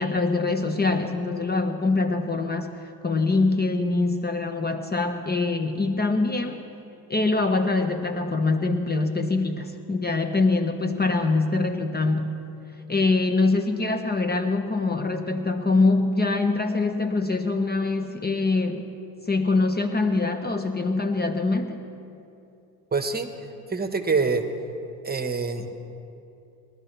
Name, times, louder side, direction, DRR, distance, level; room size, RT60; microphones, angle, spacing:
voice 1, 0.0-6.6 7.1-12.4 12.9-18.9 19.3-21.8, left 3 dB, 20° left, 6 dB, 1.0 m, -24 dB
voice 2, 22.9-23.3 23.7-24.4 25.0-25.7, right 4 dB, 20° right, 7 dB, 1.4 m, -25 dB
21.5 x 12.5 x 3.4 m, 2.6 s
hypercardioid pair, 70°, 48 cm